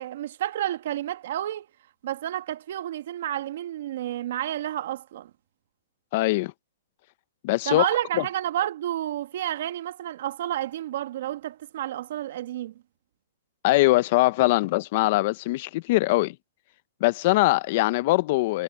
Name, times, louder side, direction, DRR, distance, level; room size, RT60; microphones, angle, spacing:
voice 1, 0.0-1.7 2.0-5.3 7.7-12.7, right 12 dB, 55° right, 1.8 m, -30 dB
voice 2, 6.1-6.5 7.4-7.9 8.2-8.3 13.6-16.4 17.0-18.6, left 19 dB, 40° left, 0.8 m, -22 dB
hypercardioid pair, 155°, 0 cm